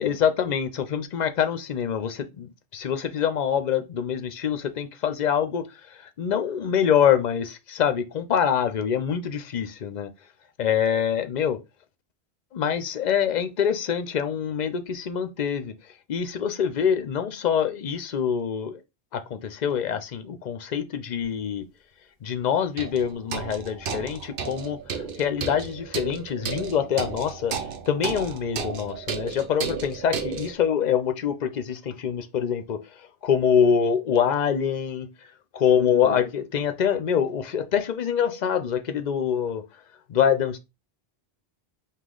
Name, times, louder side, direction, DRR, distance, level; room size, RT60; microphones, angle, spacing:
voice 1, 0.0-5.6 6.2-10.1 10.6-11.6 12.5-15.7 16.1-18.8 19.1-21.6 22.2-27.5 27.9-32.8 33.2-35.1 35.5-39.6 40.1-40.6, left 8 dB, 50° left, 0.6 m, -25 dB
sound 1, 21.2-21.3 22.8-30.5, right 6 dB, 60° right, 0.9 m, -33 dB
5.0 x 2.4 x 3.7 m
omnidirectional pair, 1.0 m